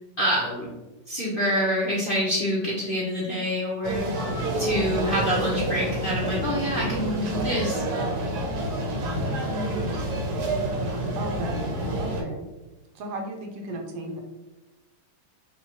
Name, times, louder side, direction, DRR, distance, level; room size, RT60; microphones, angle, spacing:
voice 1, 0.2-0.7 1.1-4.1 4.6-7.8, equal, 55° left, -7 dB, 0.6 m, -26 dB
sound 1, 3.8-12.2, right 1 dB, 70° right, 1.2 m, -28 dB
voice 2, 9.5-10.0 11.1-11.7 12.0-12.5 12.9-14.2, right 1 dB, 85° right, 2 dB, 1.4 m, -34 dB
5.4 x 2.3 x 2.8 m, 1.1 s
omnidirectional pair, 2.0 m